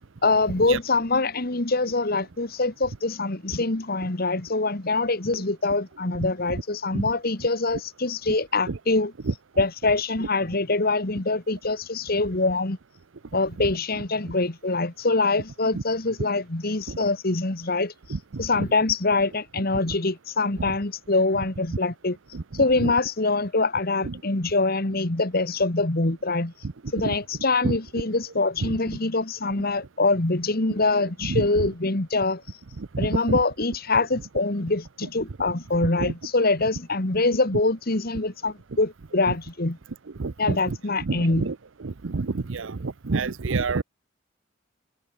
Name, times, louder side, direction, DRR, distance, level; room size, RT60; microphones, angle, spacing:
voice 1, 0.2-9.1 9.6-12.8 13.3-17.9 18.4-22.2 22.5-26.5 26.9-32.4 33.0-39.8 40.4-41.5, left 3 dB, 50° left, 1.7 m, -24 dB
voice 2, 9.2-9.6 13.6-13.7 15.7-15.8 16.9-17.1 18.1-18.7 20.6-20.8 22.3-22.9 24.0-24.1 27.0-27.2 27.6-27.8 28.6-28.8 31.2-31.7 32.8-33.4 36.0-36.1 39.3-39.4 40.2-43.8, right 3 dB, 70° right, 0.7 m, -29 dB
head